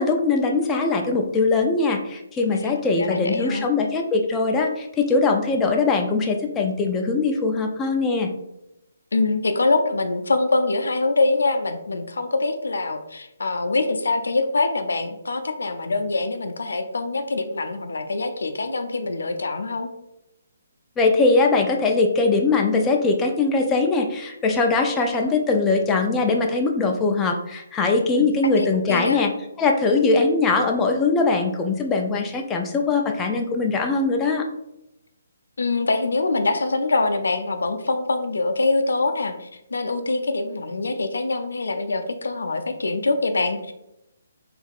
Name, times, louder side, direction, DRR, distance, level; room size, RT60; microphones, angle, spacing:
voice 1, 0.0-8.3 21.0-29.3 29.6-34.4, left 3 dB, 15° left, 2 dB, 0.4 m, -21 dB
voice 2, 2.5-3.7 9.1-19.9 28.1-28.3 28.6-29.2 35.6-43.7, left 3 dB, 75° left, 7 dB, 0.5 m, -24 dB
3.9 x 3.2 x 2.4 m, 0.87 s
figure-of-eight pair, 140°, 0 cm